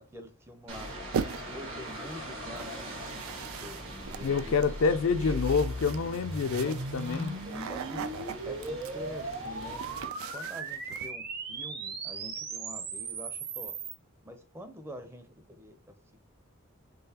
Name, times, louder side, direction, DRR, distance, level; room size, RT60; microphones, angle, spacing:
voice 1, 0.0-4.5 4.9-5.4 6.6-6.8 7.7-8.0 8.4-9.8 10.3-13.8 14.2-16.2, equal, 10° right, 0.5 m, -46 dB
sound 1, 0.7-10.1, right 1 dB, 70° right, 1.2 m, -42 dB
sound 2, 1.1-1.7 2.6-11.1, right 7 dB, 85° right, 0.3 m, -40 dB
sound 3, 4.0-13.9, right 3 dB, 50° right, 0.8 m, -38 dB
voice 2, 4.2-7.3, left 5 dB, 75° left, 0.4 m, -27 dB
3.9 x 3.1 x 2.8 m
head